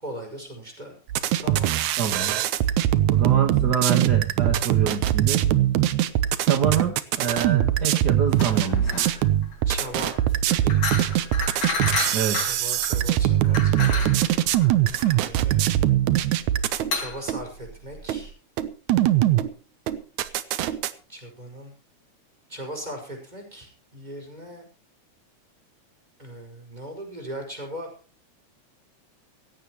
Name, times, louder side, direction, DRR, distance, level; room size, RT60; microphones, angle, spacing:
voice 1, 0.0-0.9 1.2-1.9 9.7-10.2 10.5-10.9 12.5-14.1 15.2-15.9 16.9-18.3 21.1-21.7 22.5-24.7 26.2-27.9, right 1 dB, 15° right, 2 dB, 5.4 m, -38 dB
sound 1, 1.1-16.9 17.3-17.4 18.1-18.2 18.6-19.5 19.9-20.9, right 12 dB, 80° right, 2.2 m, -22 dB
voice 2, 2.0-2.4 3.1-5.4 6.5-8.9 12.1-12.4, right 7 dB, 45° right, 5 dB, 1.5 m, -26 dB
sound 2, 8.3-18.3, left 4 dB, 80° left, 5.1 m, -32 dB
17.0 x 16.0 x 3.1 m, 0.34 s
omnidirectional pair, 3.5 m